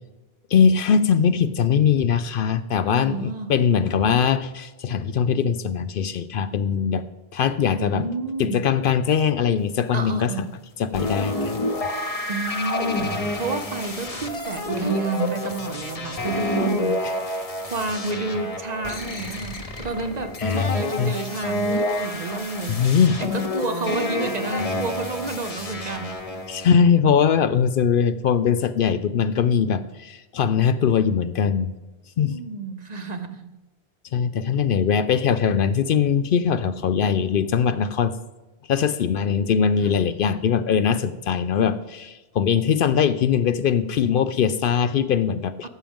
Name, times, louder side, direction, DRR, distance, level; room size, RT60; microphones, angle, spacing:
voice 1, 0.5-7.0 7.3-8.1 8.4-10.3 10.8-11.5 20.4-21.2 22.7-23.2 26.5-31.7 32.2-32.4 34.1-38.1 38.7-45.7, left 7 dB, 65° left, 13 dB, 0.7 m, -21 dB
voice 2, 2.9-3.5 7.8-8.6 9.9-10.5 12.3-17.4 17.6-22.8 23.2-26.2 32.2-33.5 39.8-39.9 45.6-45.7, right 3 dB, 45° right, 8 dB, 0.8 m, -30 dB
sound 1, 10.9-26.6, left 2 dB, 35° left, 1.1 m, -29 dB
13.5 x 7.4 x 3.6 m, 1.1 s
omnidirectional pair, 1.1 m